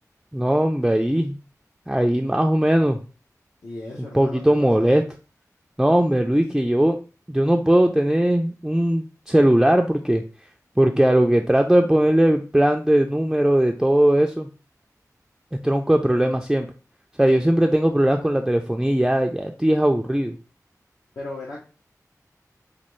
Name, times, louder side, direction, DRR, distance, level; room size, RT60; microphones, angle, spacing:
voice 1, 0.3-1.4 1.9-3.0 4.1-5.0 5.8-7.0 7.3-10.2 10.8-14.5 15.6-16.7 17.2-20.3, right 1 dB, 5° right, 3 dB, 0.3 m, -19 dB
voice 2, 3.6-4.9 21.2-21.6, left 2 dB, 70° left, -4 dB, 0.8 m, -36 dB
5.1 x 2.3 x 3.1 m, 0.36 s
wide cardioid pair, 65°, 6 cm